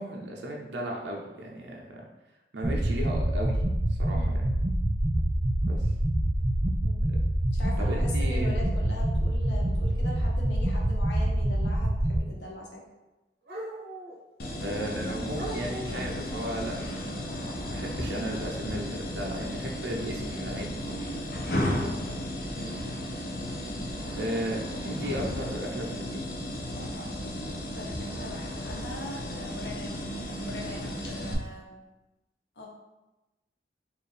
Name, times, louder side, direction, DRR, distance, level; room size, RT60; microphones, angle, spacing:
voice 1, 0.0-2.0 2.5-3.6 3.9-4.3 5.7-5.9 7.8-8.6 14.6-21.2 24.1-26.2, right 1 dB, 85° right, -1 dB, 0.6 m, -35 dB
sound 1, 2.6-12.2, right 1 dB, 25° right, 0.3 m, -26 dB
sound 2, 6.4-6.5 7.9-8.0 9.0-9.2 11.7-11.8 13.4-14.2 14.9-15.0 15.3-16.2, right 1 dB, 60° right, 1.1 m, -39 dB
voice 2, 7.5-12.8 21.8-22.0 22.5-23.0 27.4-30.0 30.4-31.7 32.6-32.7, left 1 dB, 75° left, -2 dB, 0.9 m, -41 dB
sound 3, 14.4-31.3, left 1 dB, 60° left, 0.6 m, -34 dB
4.3 x 2.5 x 3.3 m, 1.0 s
head